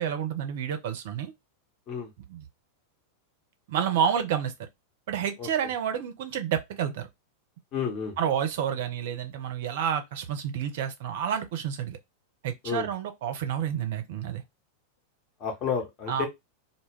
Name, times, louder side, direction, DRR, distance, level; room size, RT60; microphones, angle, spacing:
voice 1, 0.0-1.3 2.3-2.5 3.7-4.5 5.1-7.1 8.2-12.0 12.4-14.4 16.1-16.3, right 8 dB, 55° right, 0.5 m, -29 dB
voice 2, 7.7-8.2 12.6-12.9 15.4-16.3, left 6 dB, 35° left, 0.8 m, -30 dB
2.2 x 2.0 x 3.4 m
figure-of-eight pair, 90°, 0 cm